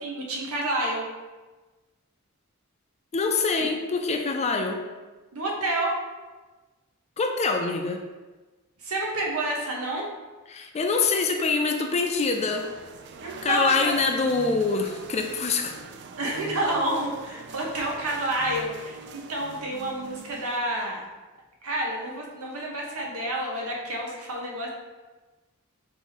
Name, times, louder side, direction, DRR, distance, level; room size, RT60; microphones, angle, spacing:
voice 1, 0.0-1.1 5.3-6.0 8.8-10.1 13.2-13.7 16.2-21.0 21.6-24.7, right 1 dB, 75° right, -1 dB, 1.0 m, -29 dB
voice 2, 3.1-4.8 7.2-8.0 10.5-12.7 13.4-15.7, left 4 dB, 30° left, 4 dB, 0.4 m, -25 dB
sound 1, 11.8-20.6, right 4 dB, 50° right, 0.3 m, -44 dB
4.7 x 2.7 x 4.1 m, 1.2 s
head